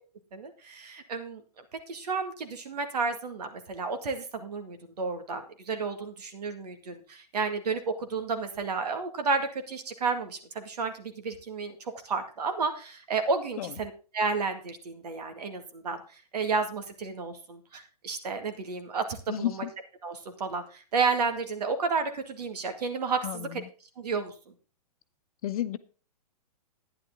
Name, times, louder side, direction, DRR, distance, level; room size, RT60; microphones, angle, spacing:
voice 1, 0.3-19.6 20.0-23.6 24.0-24.3, right 4 dB, 75° right, 7 dB, 2.0 m, -32 dB
voice 2, 19.3-19.7 23.2-23.6 25.4-25.8, left 12 dB, 60° left, 12 dB, 0.9 m, -32 dB
11.5 x 9.9 x 3.7 m, 0.36 s
hypercardioid pair, 115°, 21 cm